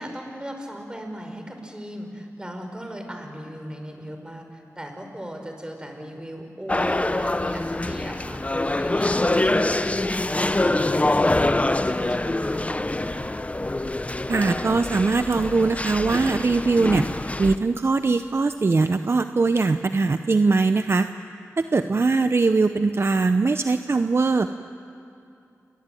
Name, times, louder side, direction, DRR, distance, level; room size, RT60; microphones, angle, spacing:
voice 1, 0.0-13.2 21.7-22.1, equal, 15° right, 4 dB, 5.2 m, -38 dB
sound 1, 6.7-17.6, left 2 dB, 25° left, 0.9 m, -25 dB
voice 2, 14.3-17.0 17.4-21.1 21.6-24.5, right 3 dB, 50° right, 9 dB, 0.8 m, -21 dB
28.5 x 22.5 x 9.3 m, 2.5 s
cardioid pair, 55°, 5 cm